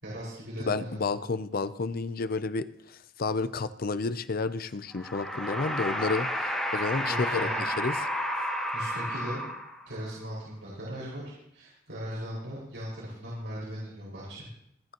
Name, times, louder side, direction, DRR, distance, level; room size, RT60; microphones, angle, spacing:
voice 1, 0.0-1.0 7.0-7.7 8.7-9.5 9.9-11.2 11.5-14.5, equal, 85° right, -7 dB, 5.4 m, -38 dB
voice 2, 0.6-8.0, left 4 dB, 50° left, 12 dB, 0.6 m, -31 dB
sound 1, 4.9-10.0, equal, 5° left, 2.5 m, -31 dB
25.5 x 9.4 x 3.0 m, 0.73 s
head